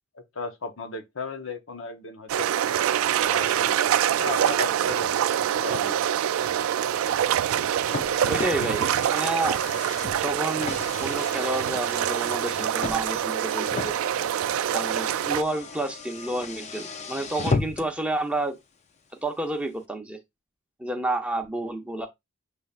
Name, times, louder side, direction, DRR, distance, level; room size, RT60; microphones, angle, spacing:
voice 1, 0.1-2.5 3.2-3.9 4.2-5.3 5.6-6.0 7.5-7.7, left 3 dB, 70° left, 0.8 m, -35 dB
sound 1, 2.3-15.4, right 10 dB, 90° right, 0.3 m, -25 dB
Car, 7.4-18.0, left 4 dB, 35° left, 0.5 m, -35 dB
voice 2, 8.2-9.6 10.1-14.0 14.7-18.5 19.2-20.2 20.8-22.1, right 2 dB, 5° right, 0.7 m, -30 dB
6.8 x 3.2 x 2.4 m
head